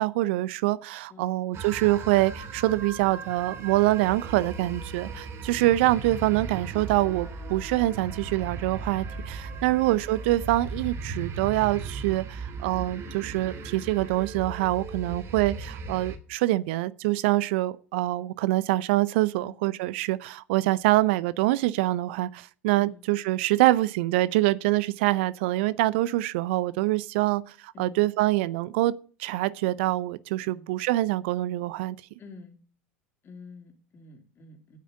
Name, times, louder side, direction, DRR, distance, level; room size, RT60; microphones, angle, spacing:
voice 1, 0.0-28.9 29.2-32.0, right 17 dB, 60° right, 0.6 m, -25 dB
voice 2, 1.1-1.4 5.5-6.0 9.7-10.1 15.1-15.3 19.4-19.5 22.8-23.1 27.7-28.0 30.4-30.7 32.2-32.6 33.2-34.8, left 3 dB, 35° left, 3.1 m, -49 dB
sound 1, 1.5-16.2, right 4 dB, 35° right, 2.4 m, -37 dB
9.6 x 8.4 x 6.5 m
hypercardioid pair, 85°, 7 cm